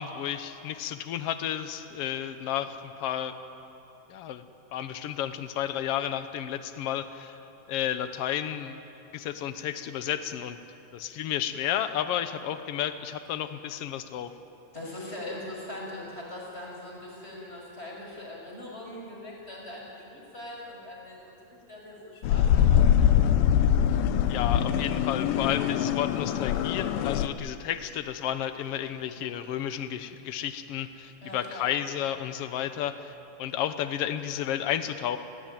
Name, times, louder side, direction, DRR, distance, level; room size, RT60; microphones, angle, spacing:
voice 1, 0.0-3.3 4.1-4.4 4.7-7.4 7.7-8.8 9.1-10.6 10.9-14.3 24.3-35.2, left 10 dB, 75° left, 10 dB, 1.4 m, -32 dB
voice 2, 14.7-23.1 31.2-31.7, left 1 dB, 15° left, -2 dB, 6.3 m, -41 dB
sound 1, 22.2-27.3, left 9 dB, 90° left, 2.6 m, -23 dB
30.0 x 17.0 x 9.1 m, 2.9 s
omnidirectional pair, 3.9 m